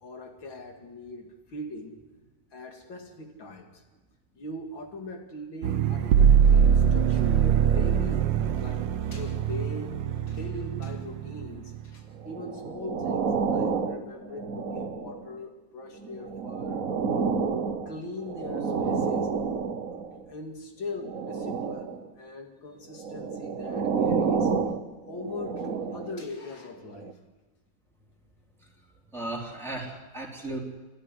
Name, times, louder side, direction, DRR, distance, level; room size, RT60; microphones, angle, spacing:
voice 1, 0.0-2.0 2.5-3.8 4.3-10.0 10.3-17.4 17.9-19.3 20.3-24.5 25.0-27.1, left 2 dB, 75° left, 3 dB, 3.2 m, -40 dB
sound 1, 5.6-11.9, right 8 dB, 70° right, 1.6 m, -23 dB
sound 2, 12.3-15.4 16.0-20.2 20.9-22.1 22.9-26.3 26.9-27.1, right 5 dB, 50° right, 1.5 m, -30 dB
voice 2, 29.1-30.6, right 2 dB, ahead, -2 dB, 3.6 m, -36 dB
29.0 x 13.0 x 9.8 m, 1.2 s
omnidirectional pair, 2.1 m